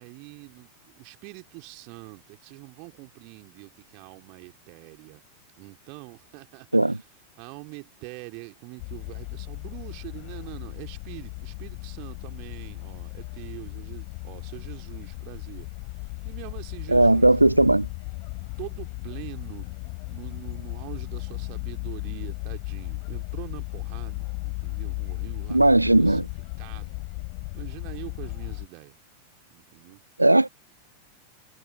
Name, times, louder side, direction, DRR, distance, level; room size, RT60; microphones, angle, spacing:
voice 1, 0.0-5.2 5.6-7.1 7.4-15.7 15.9-17.4 18.6-19.7 20.1-25.6 25.9-26.2 26.6-27.0 27.5-29.0 29.5-30.0, right 35 dB, 45° right, 3.2 m, -44 dB
sound 1, 8.8-28.7, left 40 dB or more, 45° left, 5.8 m, -36 dB
voice 2, 16.9-17.9 25.5-26.2 30.2-30.5, right 2 dB, 85° right, 0.3 m, -17 dB
figure-of-eight pair, 90°, 0 cm